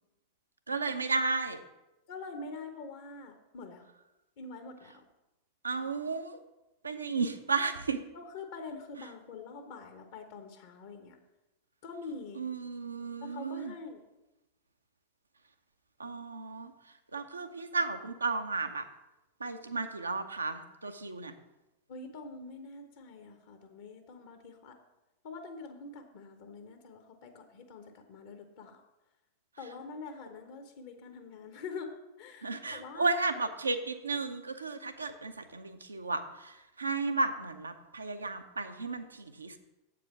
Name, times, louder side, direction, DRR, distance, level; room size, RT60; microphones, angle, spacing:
voice 1, 0.7-1.6 5.6-6.4 6.8-8.0 12.4-13.7 16.0-16.7 17.1-18.8 19.4-21.3 32.4-39.6, right 3 dB, 75° right, 7 dB, 0.7 m, -33 dB
voice 2, 2.1-3.9 4.4-5.1 8.1-11.2 11.8-12.4 13.2-14.0 21.9-24.8 25.2-28.8 29.6-33.1, left 4 dB, 55° left, 6 dB, 0.9 m, -45 dB
7.9 x 4.9 x 7.1 m, 0.98 s
figure-of-eight pair, 90°, 0 cm